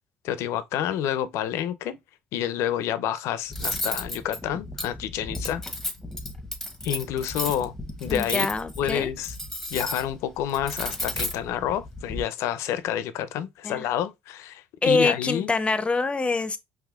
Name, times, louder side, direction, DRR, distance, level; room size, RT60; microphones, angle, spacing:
voice 1, 0.2-2.0 2.3-5.6 6.8-7.7 8.0-8.5 8.8-9.3 9.7-15.5, left 10 dB, 70° left, 0.5 m, -29 dB
Cutlery silverware, 3.5-12.2, left 1 dB, 5° left, 1.0 m, -33 dB
voice 2, 8.1-9.1 13.6-13.9 14.8-16.6, left 3 dB, 20° left, 0.6 m, -25 dB
4.8 x 3.0 x 2.3 m
supercardioid pair, 75°, 5 cm